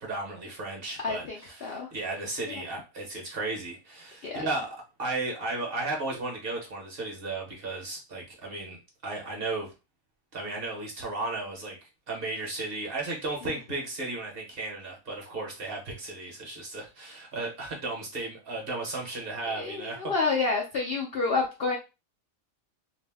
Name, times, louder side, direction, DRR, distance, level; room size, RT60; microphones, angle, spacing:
voice 1, 0.0-8.8 9.0-9.7 10.3-20.1, right 2 dB, 50° right, 0 dB, 0.9 m, -35 dB
voice 2, 1.0-1.9 2.5-2.6 4.2-4.4 19.6-21.8, left 4 dB, 65° left, -1 dB, 0.6 m, -29 dB
2.6 x 2.0 x 3.3 m, 0.29 s
omnidirectional pair, 1.5 m